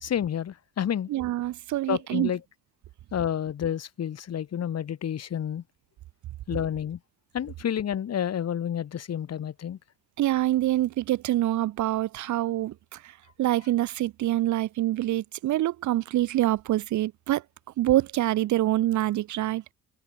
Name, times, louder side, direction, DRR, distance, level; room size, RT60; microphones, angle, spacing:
voice 1, 0.0-1.1 1.9-2.4 3.1-5.6 6.5-7.0 7.3-9.8, left 9 dB, 55° left, 2.5 m, -29 dB
voice 2, 1.1-2.3 10.2-13.1 13.4-17.4 17.8-19.7, right 14 dB, 70° right, 0.8 m, -26 dB
cardioid pair, 90°, 30 cm